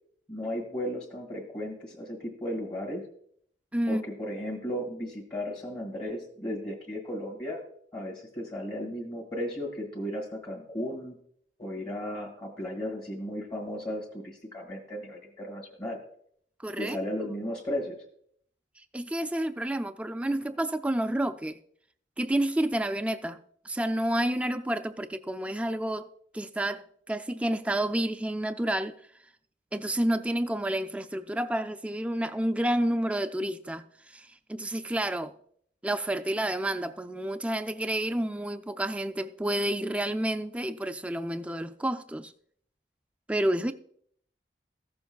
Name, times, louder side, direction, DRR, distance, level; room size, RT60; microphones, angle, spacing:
voice 1, 0.3-3.0 3.9-7.6 7.9-11.1 11.6-16.0 16.8-18.0, equal, 25° left, 1.7 m, -35 dB
voice 2, 3.7-4.0 16.6-17.0 18.8-21.6 22.2-23.4 23.6-26.1 26.3-28.9 29.7-35.3 35.8-42.3 43.3-43.7, right 1 dB, 5° right, 0.3 m, -29 dB
15.0 x 7.0 x 2.3 m
head